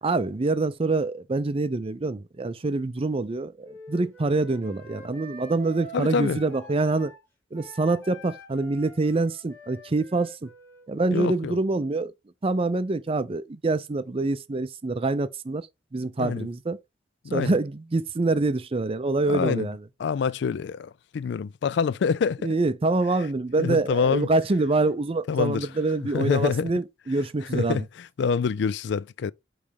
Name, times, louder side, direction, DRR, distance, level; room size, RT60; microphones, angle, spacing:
voice 1, 0.0-7.1 7.5-10.5 10.9-12.1 12.4-15.7 15.9-16.8 17.3-19.8 22.4-27.9, right 3 dB, 30° right, 0.5 m, -25 dB
Wind instrument woodwind instrument, 3.6-7.2 7.5-11.3, right 1 dB, 10° left, 2.6 m, -46 dB
voice 2, 5.9-6.4 11.1-11.6 16.2-16.5 17.2-17.5 19.3-19.7 20.0-22.4 23.6-24.3 25.3-25.7 26.1-26.7 27.5-27.8 28.2-29.3, left 6 dB, 65° left, 0.3 m, -26 dB
8.5 x 3.2 x 3.5 m
head